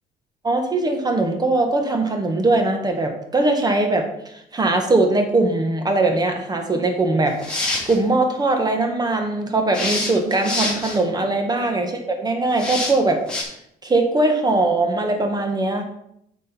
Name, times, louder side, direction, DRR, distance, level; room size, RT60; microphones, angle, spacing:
voice 1, 0.4-7.6 7.9-13.2 13.8-15.8, right 2 dB, 25° right, 4 dB, 1.8 m, -21 dB
sound 1, 7.3-8.0 9.7-11.0 12.6-12.9 13.3-13.4, left 2 dB, 5° left, 3.3 m, -25 dB
9.4 x 6.3 x 4.6 m, 0.76 s
cardioid pair, 110°, 17 cm